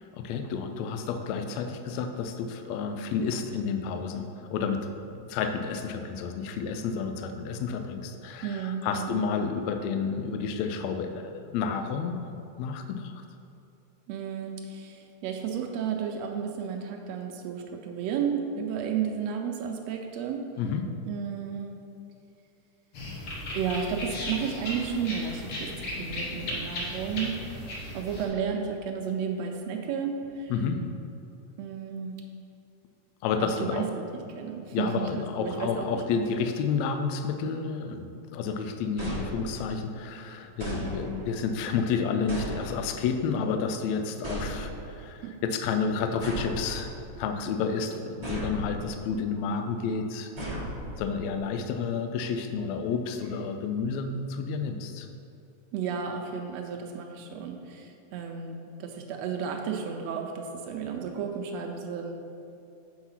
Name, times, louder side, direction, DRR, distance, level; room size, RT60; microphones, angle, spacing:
voice 1, 0.1-12.2 12.6-13.2 20.6-20.8 30.5-30.8 33.2-33.9 34.7-46.9 47.2-50.3 51.0-55.1, left 5 dB, 80° left, 7 dB, 1.6 m, -30 dB
voice 2, 8.4-9.2 14.1-20.4 21.1-21.8 23.5-27.4 27.9-30.5 31.6-32.1 33.4-35.8 45.2-45.3 55.7-62.1, right 7 dB, 80° right, 3 dB, 1.5 m, -33 dB
sound 1, 22.9-28.2, left 1 dB, 50° left, 1.9 m, -36 dB
sound 2, 39.0-39.9 40.6-41.4 42.3-43.1 44.2-45.0 46.2-47.2 48.2-49.0 50.4-51.3, right 1 dB, 40° right, 0.4 m, -36 dB
7.8 x 4.7 x 5.7 m, 2.7 s
omnidirectional pair, 3.6 m